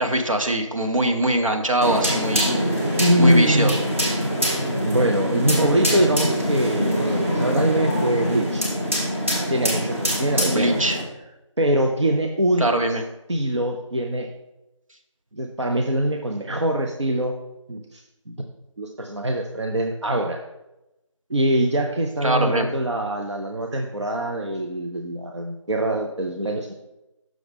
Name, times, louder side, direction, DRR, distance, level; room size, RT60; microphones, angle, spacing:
voice 1, 0.0-2.5 3.2-3.7 10.4-11.0 12.6-13.0 22.2-22.7, right 1 dB, 85° right, 4 dB, 1.1 m, -22 dB
sound 1, 1.8-11.0, equal, 25° right, 1.3 m, -24 dB
voice 2, 3.0-3.8 4.8-8.6 9.5-10.8 11.6-12.9 13.3-14.3 15.3-17.3 17.7-18.0 18.3-18.5 18.8-20.4 21.3-26.7, right 1 dB, 60° right, 2 dB, 0.7 m, -23 dB
6.3 x 5.8 x 3.4 m, 0.93 s
figure-of-eight pair, 175°, 17 cm